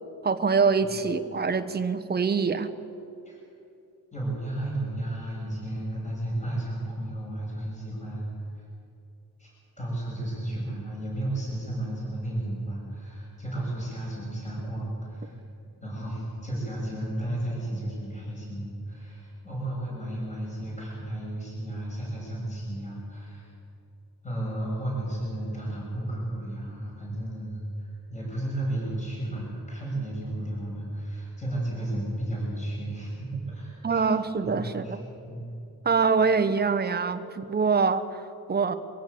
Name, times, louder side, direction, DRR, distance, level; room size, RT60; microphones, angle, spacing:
voice 1, 0.2-2.7 33.8-35.1 35.8-38.7, right 5 dB, 25° right, 8 dB, 1.0 m, -25 dB
voice 2, 4.1-8.5 9.4-15.3 15.8-23.5 24.2-34.1 34.4-35.0 35.3-35.4, right 1 dB, 20° left, -5 dB, 7.5 m, -33 dB
24.5 x 16.0 x 8.5 m, 2.6 s
wide cardioid pair, 165°, 36 cm